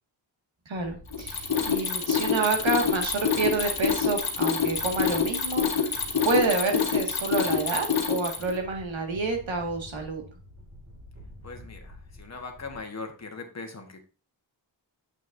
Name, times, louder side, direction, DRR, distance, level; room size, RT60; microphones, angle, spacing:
sound 1, 0.7-12.8, equal, 40° right, 4.0 m, -48 dB
voice 1, 0.7-5.9 6.2-10.2, right 3 dB, 75° right, 3 dB, 1.9 m, -28 dB
Mechanisms, 1.1-8.6, left 6 dB, 50° left, 1.5 m, -26 dB
voice 2, 11.4-14.0, left 3 dB, 35° left, 4 dB, 1.3 m, -40 dB
7.8 x 6.2 x 2.6 m, 0.35 s
wide cardioid pair, 110°, 46 cm